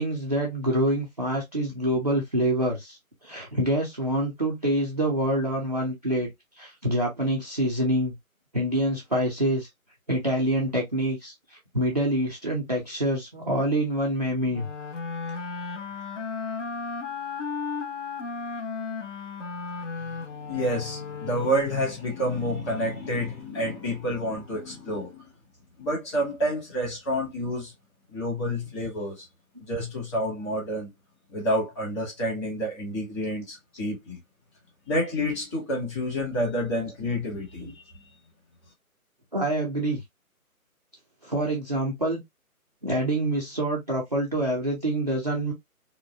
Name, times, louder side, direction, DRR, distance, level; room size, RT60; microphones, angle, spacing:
voice 1, 0.0-3.0 3.2-6.3 6.6-8.1 8.5-9.7 10.1-14.7 37.6-37.7 39.3-40.0 41.2-42.2 42.8-45.5, right 1 dB, 30° right, 0.5 m, -26 dB
sound 1, 14.5-22.0, left 5 dB, 55° left, 0.7 m, -35 dB
voice 2, 20.1-25.3 25.8-27.7 28.1-29.2 29.6-30.9 31.3-34.2 34.9-37.7, equal, 20° left, 1.7 m, -29 dB
4.0 x 2.2 x 2.3 m
figure-of-eight pair, 150°, 43 cm